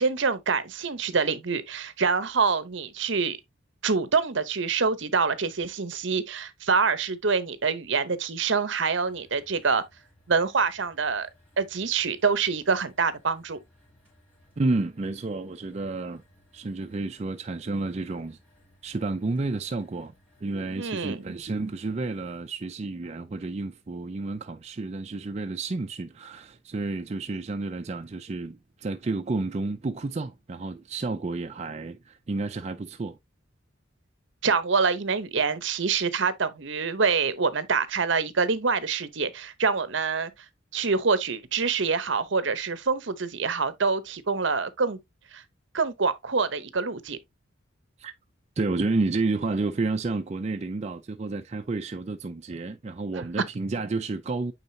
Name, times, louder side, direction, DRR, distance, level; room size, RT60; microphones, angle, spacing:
voice 1, 0.0-3.4 3.8-9.8 10.3-11.3 11.6-13.6 20.8-21.2 34.4-40.3 40.7-45.0 45.3-45.4 45.7-47.2, right 5 dB, 60° right, 0.8 m, -26 dB
sound 1, 9.0-22.4, equal, 5° left, 3.4 m, -61 dB
voice 2, 14.6-16.2 16.5-18.4 18.8-20.1 20.4-33.2 48.0-48.1 48.6-54.5, right 3 dB, 30° right, 0.4 m, -30 dB
8.9 x 3.9 x 2.7 m
head